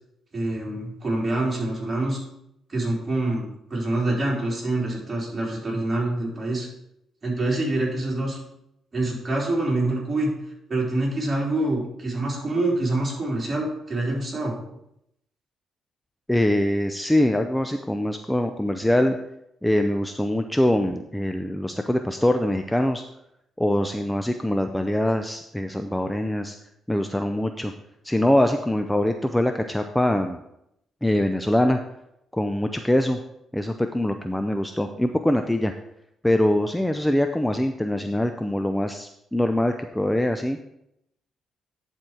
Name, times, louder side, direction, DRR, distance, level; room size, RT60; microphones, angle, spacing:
voice 1, 0.3-2.2 2.7-6.7 7.2-8.4 8.9-10.3 10.7-14.5, right 2 dB, 30° right, -4 dB, 3.7 m, -26 dB
voice 2, 16.3-19.2 19.6-23.0 23.6-26.6 26.9-27.7 28.0-30.4 31.0-31.8 32.3-33.2 33.5-35.7 36.2-40.6, left 1 dB, 5° left, 6 dB, 0.5 m, -23 dB
10.5 x 4.5 x 4.9 m, 0.80 s
cardioid pair, 80°, 0 cm